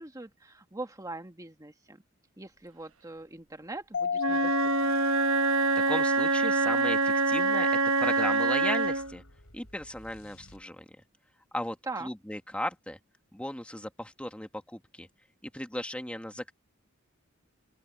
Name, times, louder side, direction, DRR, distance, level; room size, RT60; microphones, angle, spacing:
voice 1, 0.0-2.0 2.4-5.0 11.8-12.1, right 2 dB, 15° right, 1.5 m, -42 dB
Mallet percussion, 3.9-6.5, left 6 dB, 65° left, 2.7 m, -34 dB
Wind instrument woodwind instrument, 4.2-9.1, right 3 dB, 75° right, 1.1 m, -25 dB
voice 2, 5.9-7.7 8.0-9.2 9.5-10.8 11.5-13.0 13.3-15.1 15.4-16.5, left 1 dB, 5° left, 1.6 m, -36 dB
sound 1, 8.8-11.1, left 1 dB, 90° left, 7.9 m, -55 dB
open air
head